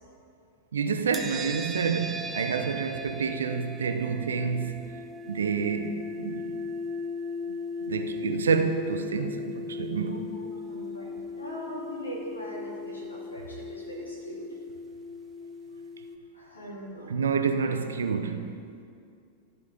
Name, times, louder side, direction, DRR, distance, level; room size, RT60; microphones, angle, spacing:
voice 1, 0.7-4.9 5.3-6.7 7.5-7.6 7.8-10.3 17.1-18.5, right 5 dB, 70° right, 0.6 m, -28 dB
sound 1, 1.1-16.2, left 2 dB, 15° right, 0.6 m, -37 dB
voice 2, 10.0-14.5 16.3-17.1, equal, 80° left, 2.4 m, -41 dB
13.5 x 5.2 x 5.1 m
figure-of-eight pair, 90°, 0 cm